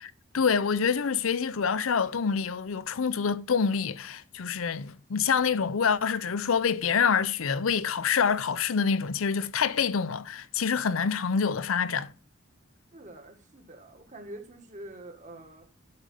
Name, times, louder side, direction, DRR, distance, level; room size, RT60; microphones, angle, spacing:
voice 1, 0.0-12.1, left 6 dB, 85° left, 0.6 m, -26 dB
voice 2, 12.9-15.7, right 1 dB, 40° right, 1.9 m, -45 dB
11.5 x 5.0 x 6.6 m
head